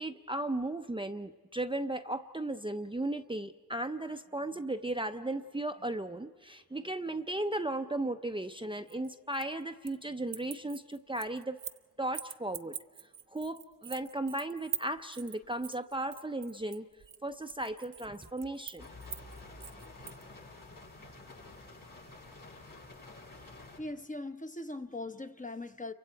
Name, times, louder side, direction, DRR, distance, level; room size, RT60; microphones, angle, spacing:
voice 1, 0.0-11.6 12.0-12.7 13.3-16.9 17.2-18.9, right 1 dB, 15° right, 7 dB, 0.7 m, -36 dB
sound 1, 8.9-10.0 10.3-11.8 12.1-20.2, right 8 dB, 70° right, 0.7 m, -44 dB
sound 2, 18.8-23.8, left 2 dB, 75° left, 7.0 m, -50 dB
voice 2, 23.8-25.9, left 2 dB, 25° left, 7 dB, 1.0 m, -40 dB
29.0 x 24.0 x 4.6 m, 1.4 s
cardioid pair, 55°, 34 cm